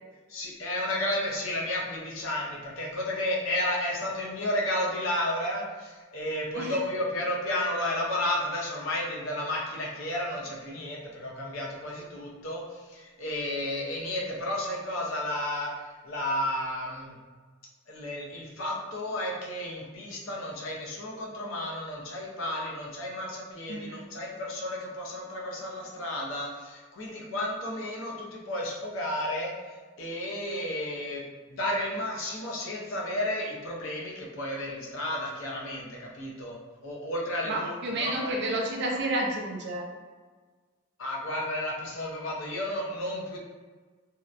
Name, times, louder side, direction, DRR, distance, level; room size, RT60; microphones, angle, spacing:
voice 1, 0.3-17.1 17.9-29.5 30.0-31.2 31.5-36.6 36.8-37.7 38.0-38.3 41.0-43.4, left 1 dB, 75° left, -2 dB, 0.6 m, -32 dB
voice 2, 23.7-24.0 37.5-39.9, right 1 dB, 55° right, 0 dB, 0.4 m, -30 dB
2.7 x 2.1 x 2.4 m, 1.4 s
head